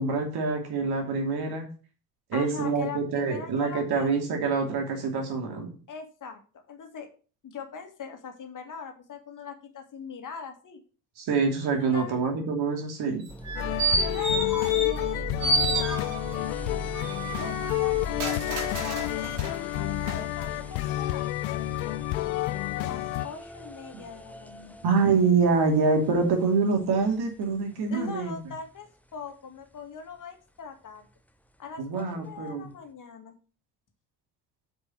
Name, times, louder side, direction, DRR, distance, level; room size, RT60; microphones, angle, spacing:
voice 1, 0.0-1.7 2.3-5.7 11.2-13.3 24.8-28.3 31.8-32.7, right 4 dB, 50° right, 2 dB, 2.8 m, -25 dB
voice 2, 2.3-4.1 5.9-7.1 7.4-10.8 11.8-12.2 14.0-16.0 16.3-16.8 17.3-21.3 22.8-24.8 25.5-25.7 27.9-31.0 31.6-33.3, left 6 dB, 40° left, 5 dB, 2.2 m, -41 dB
sound 1, 13.2-15.1 15.4-16.4 16.9-19.6 20.0-20.1, right 3 dB, 70° right, 2.8 m, -30 dB
sound 2, 13.3-28.1 28.6-28.7 29.3-29.4 32.0-32.1, right 1 dB, 5° left, 0.9 m, -42 dB
sound 3, 13.5-23.3, left 17 dB, 65° left, 0.8 m, -29 dB
8.0 x 5.3 x 6.4 m, 0.37 s
figure-of-eight pair, 50°, 47 cm